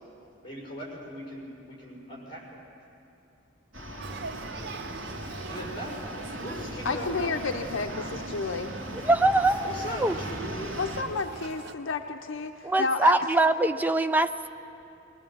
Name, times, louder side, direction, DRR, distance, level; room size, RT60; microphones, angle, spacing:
voice 1, 0.4-2.6 5.5-7.7 9.6-10.7, equal, 25° left, -4 dB, 5.7 m, -39 dB
sound 1, 3.7-11.0, equal, 75° right, 2.5 m, -39 dB
Male speech man speaking / Child speech kid speaking / Conversation, 4.0-11.7, right 4 dB, 55° right, 0.6 m, -42 dB
voice 2, 6.8-8.7 10.8-13.3, left 4 dB, 80° left, 5 dB, 0.7 m, -31 dB
voice 3, 9.1-10.2 12.6-14.5, right 2 dB, 10° right, 9 dB, 0.4 m, -23 dB
20.5 x 20.0 x 7.3 m, 2.9 s
head